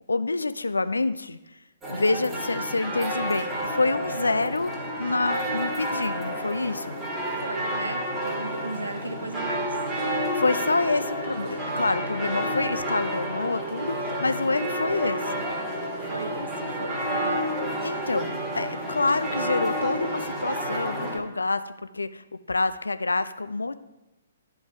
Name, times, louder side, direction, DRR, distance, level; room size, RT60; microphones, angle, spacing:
voice 1, 0.1-1.4 1.9-4.7 5.0-7.0 10.3-15.4 17.8-23.8, left 3 dB, 75° left, 12 dB, 0.4 m, -27 dB
sound 1, 1.8-21.2, right 1 dB, 10° right, 1.5 m, -30 dB
voice 2, 7.4-9.8 16.0-17.5, right 2 dB, 80° right, 9 dB, 0.5 m, -36 dB
11.0 x 3.9 x 4.7 m, 0.99 s
figure-of-eight pair, 125°, 0 cm